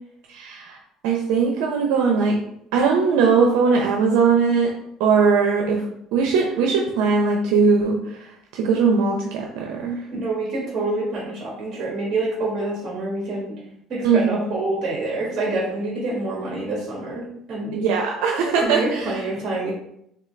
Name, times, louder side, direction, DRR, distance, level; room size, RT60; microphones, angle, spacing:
voice 1, 0.3-0.8 1.0-2.4 2.7-4.7 5.0-5.8 6.1-10.0 14.0-14.5 17.7-19.2, right 5 dB, 85° right, 0 dB, 0.6 m, -20 dB
voice 2, 10.1-13.6 13.9-17.2 17.5-17.8 18.6-19.7, right 2 dB, 45° right, -4 dB, 1.4 m, -27 dB
3.7 x 3.3 x 3.3 m, 0.75 s
cardioid pair, 115°, 0 cm